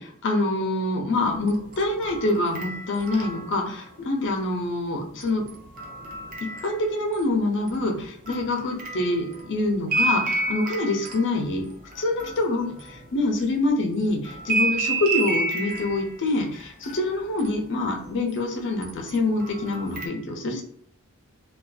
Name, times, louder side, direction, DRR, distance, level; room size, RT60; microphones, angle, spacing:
voice 1, 0.0-5.4 6.4-11.7 12.0-20.6, left 2 dB, 55° left, 2 dB, 0.6 m, -26 dB
sound 1, 1.4-4.0 5.2-7.3 7.7-13.6 14.2-18.4 18.8-20.1, right 2 dB, 40° right, 0.5 m, -31 dB
2.4 x 2.3 x 2.3 m, 0.67 s
head